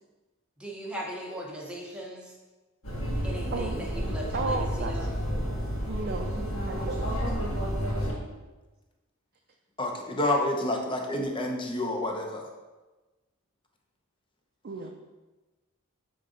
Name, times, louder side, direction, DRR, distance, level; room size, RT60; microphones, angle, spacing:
voice 1, 0.6-2.4 3.2-5.1, right 1 dB, 5° right, -4 dB, 1.0 m, -38 dB
sound 1, 2.8-8.1, equal, 65° left, 1.8 m, -30 dB
voice 2, 3.5-3.8 4.3-4.9 5.9-7.4 14.6-14.9, right 3 dB, 45° right, 2 dB, 0.4 m, -34 dB
voice 3, 9.8-12.5, left 1 dB, 25° left, 1 dB, 0.7 m, -28 dB
6.7 x 3.8 x 3.8 m, 1.2 s
head